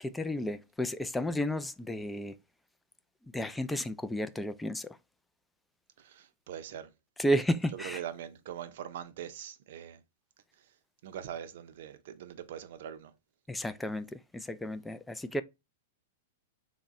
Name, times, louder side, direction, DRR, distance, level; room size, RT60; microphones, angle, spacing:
voice 1, 0.0-2.4 3.3-5.0 7.2-8.0 13.5-15.4, equal, 5° left, 0.3 m, -32 dB
voice 2, 6.0-6.9 7.7-10.0 11.0-13.1, right 10 dB, 65° right, 0.5 m, -42 dB
3.4 x 2.1 x 4.0 m
hypercardioid pair, 125°, 0 cm